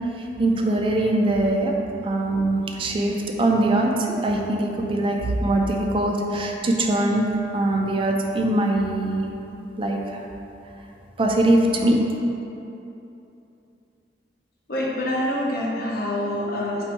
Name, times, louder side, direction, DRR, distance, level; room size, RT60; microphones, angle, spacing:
voice 1, 0.4-1.7 2.0-7.3 7.5-9.3 9.8-10.2 11.2-12.0, right 1 dB, 30° right, 1 dB, 0.4 m, -22 dB
voice 2, 14.7-16.8, left 1 dB, 55° left, -4 dB, 0.7 m, -26 dB
4.5 x 2.6 x 4.4 m, 2.9 s
head